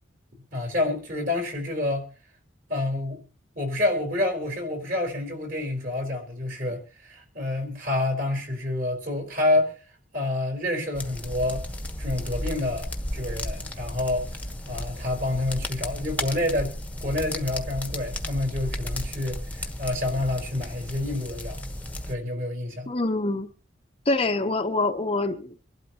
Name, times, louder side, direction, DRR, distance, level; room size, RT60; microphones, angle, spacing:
voice 1, 0.5-2.0 2.7-3.2 3.5-9.7 10.1-11.7 12.0-14.3 14.7-16.7 17.0-21.6 22.1-22.9, left 2 dB, 45° right, 4.7 m, -28 dB
sound 1, 10.9-22.1, left 1 dB, 10° left, 1.1 m, -34 dB
voice 2, 22.9-23.5 24.1-25.6, left 2 dB, 30° left, 0.8 m, -25 dB
25.0 x 12.0 x 2.9 m
head